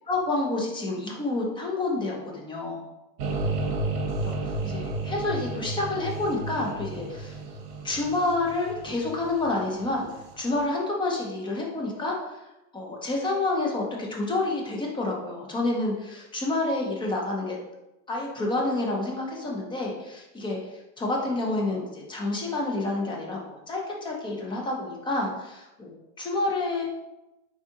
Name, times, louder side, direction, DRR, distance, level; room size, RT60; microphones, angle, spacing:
voice 1, 0.1-2.8 4.2-7.4 7.8-10.1 10.4-12.4 12.7-13.8 14.1-17.6 18.1-20.6 21.0-26.8, left 2 dB, 10° left, -1 dB, 0.4 m, -29 dB
sound 1, 3.2-10.3, right 2 dB, 45° right, 0.9 m, -32 dB
4.0 x 3.6 x 2.7 m, 0.97 s
supercardioid pair, 125°, 50 cm